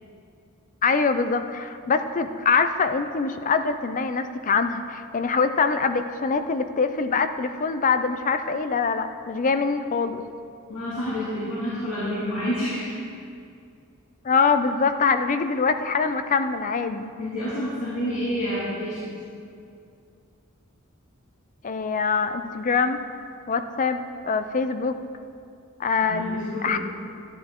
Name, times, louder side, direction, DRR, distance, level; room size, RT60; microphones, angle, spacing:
voice 1, 0.8-10.2 14.2-17.1 21.6-23.0 23.5-24.9 25.8-26.8, left 5 dB, 40° left, 9 dB, 0.5 m, -24 dB
voice 2, 10.7-12.9 17.2-19.1 26.0-26.8, equal, 85° left, -9 dB, 2.4 m, -29 dB
12.0 x 11.0 x 3.7 m, 2.4 s
head